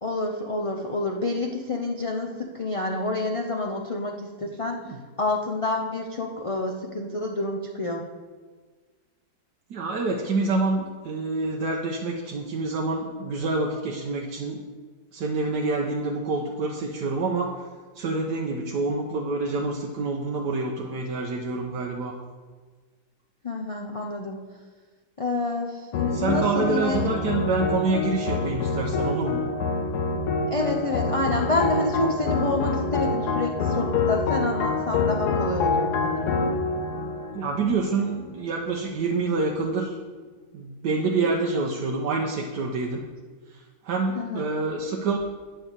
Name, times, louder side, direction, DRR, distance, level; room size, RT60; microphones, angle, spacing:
voice 1, 0.0-4.8 5.2-8.0 23.4-24.4 25.2-27.1 30.5-36.3 44.2-44.5, left 2 dB, 55° left, 1 dB, 0.3 m, -28 dB
voice 2, 9.7-14.6 15.1-17.6 17.9-22.1 26.1-29.4 37.3-40.0 40.5-43.0 43.5-45.2, right 3 dB, 85° right, 0 dB, 1.4 m, -27 dB
sound 1, 25.9-38.4, left 3 dB, 80° left, 1.3 m, -26 dB
9.5 x 5.4 x 7.2 m, 1.4 s
omnidirectional pair, 1.8 m